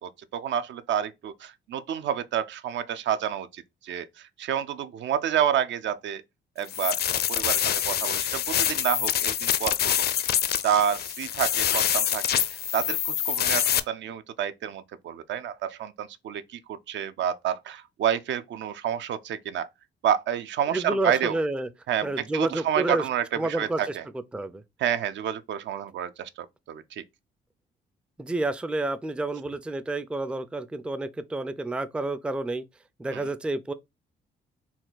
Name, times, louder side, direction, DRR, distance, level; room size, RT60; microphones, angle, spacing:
voice 1, 0.0-6.2 6.6-9.9 10.3-10.4 10.6-12.4 12.7-19.7 20.0-21.4 21.9-24.0 24.8-27.0 33.1-33.3, right 9 dB, 65° right, 0.5 m, -29 dB
sound 1, 6.7-13.8, left 10 dB, 55° left, 0.5 m, -26 dB
voice 2, 20.7-21.7 22.0-23.0 23.4-24.0 24.3-24.6 28.2-32.6 33.0-33.7, right 2 dB, 5° right, 0.3 m, -29 dB
4.3 x 2.3 x 3.8 m
cardioid pair, 90°, 20 cm